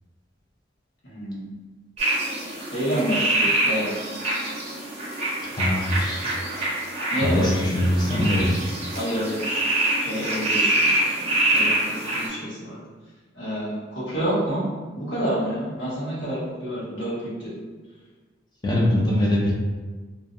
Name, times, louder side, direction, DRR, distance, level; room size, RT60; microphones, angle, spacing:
voice 1, 1.0-1.5 2.7-3.9 7.1-7.6 8.9-9.4 10.0-12.8 13.3-14.7 14.9-17.6, right 1 dB, 65° left, -9 dB, 1.1 m, -28 dB
sound 1, 2.0-12.3, right 1 dB, 35° right, 0.6 m, -25 dB
voice 2, 5.5-6.2 7.2-8.6 18.6-19.5, left 1 dB, 20° left, -4 dB, 0.4 m, -22 dB
2.6 x 2.1 x 2.5 m, 1.3 s
head